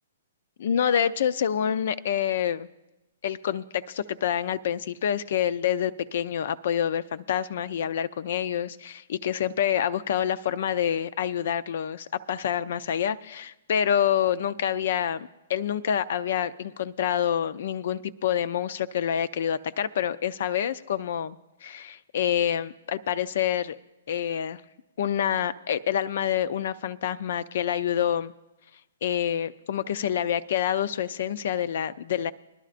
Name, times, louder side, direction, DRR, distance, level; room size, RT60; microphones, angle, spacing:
voice 1, 0.6-2.7 3.2-23.8 24.1-24.6 25.0-28.3 29.0-32.3, left 9 dB, 60° left, 15 dB, 0.4 m, -27 dB
21.0 x 11.5 x 2.5 m, 0.96 s
hypercardioid pair, 135°, 0 cm